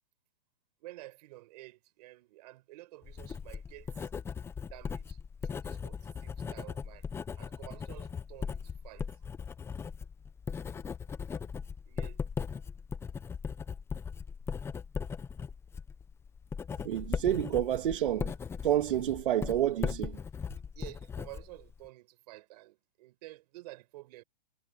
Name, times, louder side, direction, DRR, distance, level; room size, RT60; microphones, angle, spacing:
voice 1, 0.8-4.1 4.7-7.1 7.4-9.1 11.9-12.2 20.7-24.2, right 18 dB, 45° right, 5.3 m, -51 dB
Writing, 3.0-21.9, left 6 dB, 10° left, 1.2 m, -39 dB
voice 2, 16.8-18.3 18.6-20.2, right 11 dB, 60° right, 2.4 m, -29 dB
hypercardioid pair, 155°, 30 cm